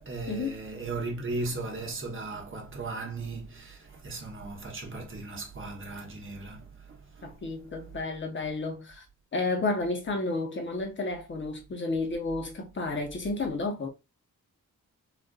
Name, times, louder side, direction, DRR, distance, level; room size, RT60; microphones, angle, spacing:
voice 1, 0.0-7.4, right 3 dB, 40° right, 1.0 m, -37 dB
voice 2, 7.2-9.0 9.3-13.9, left 3 dB, 35° left, 0.9 m, -31 dB
4.0 x 2.4 x 2.3 m
wide cardioid pair, 155°, 32 cm